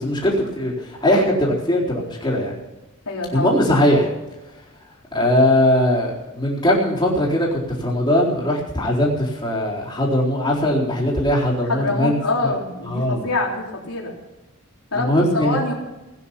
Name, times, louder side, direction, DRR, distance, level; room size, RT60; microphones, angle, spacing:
voice 1, 0.0-2.5 3.3-4.1 5.1-12.2 12.4-12.5 12.9-13.3 14.9-15.6, left 1 dB, 20° left, -4 dB, 4.2 m, -20 dB
voice 2, 3.1-3.5 11.7-14.2 14.9-15.1 15.3-15.7, left 2 dB, 90° left, -2 dB, 3.6 m, -25 dB
17.5 x 9.7 x 5.8 m, 1.0 s
head